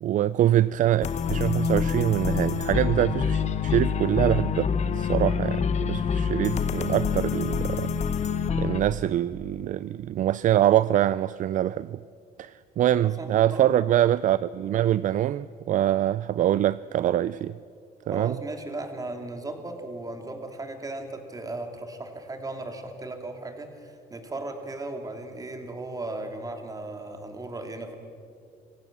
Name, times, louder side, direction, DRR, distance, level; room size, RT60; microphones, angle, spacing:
voice 1, 0.0-7.9 8.6-12.0 12.4-17.6 18.1-18.4, right 12 dB, 50° right, 0.4 m, -24 dB
sound 1, 1.0-8.8, left 6 dB, 40° left, 1.2 m, -26 dB
voice 2, 13.0-13.6 18.1-28.0, right 2 dB, 20° right, 2.8 m, -36 dB
25.5 x 16.0 x 7.4 m
cardioid pair, 110°, 17 cm